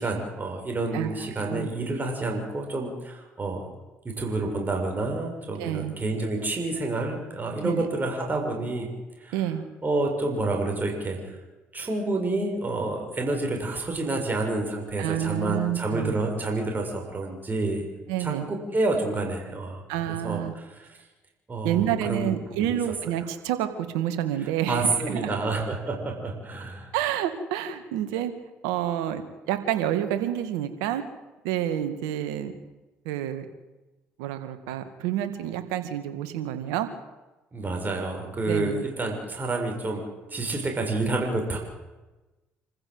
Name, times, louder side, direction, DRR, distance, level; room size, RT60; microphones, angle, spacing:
voice 1, 0.0-3.6 4.0-8.9 9.2-9.5 9.8-11.4 11.7-17.8 18.2-20.8 21.5-22.7 24.7-26.9 37.5-41.6, right 2 dB, 30° right, 2 dB, 6.6 m, -29 dB
voice 2, 0.9-1.7 5.6-5.9 7.6-7.9 9.3-9.6 15.0-16.1 18.1-18.5 19.9-20.5 21.6-23.7 23.9-25.4 26.9-28.3 28.6-31.0 31.4-32.5 33.1-33.5 34.2-36.9 38.4-38.8, right 11 dB, 85° right, 9 dB, 2.1 m, -28 dB
27.0 x 15.0 x 8.1 m, 1.1 s
supercardioid pair, 60°, 6 cm